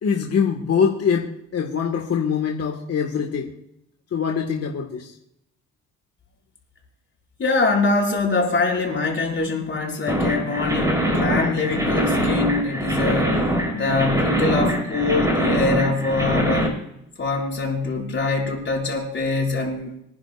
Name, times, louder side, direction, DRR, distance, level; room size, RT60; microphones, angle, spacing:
voice 1, 0.0-3.5 4.1-5.1, left 6 dB, 55° left, 1 dB, 1.7 m, -23 dB
voice 2, 7.4-16.8 17.2-19.9, left 3 dB, 40° left, -1 dB, 5.5 m, -24 dB
sound 1, 10.1-16.7, right 1 dB, 10° right, 4.7 m, -23 dB
27.0 x 10.5 x 2.5 m, 0.79 s
cardioid pair, 90°, 30 cm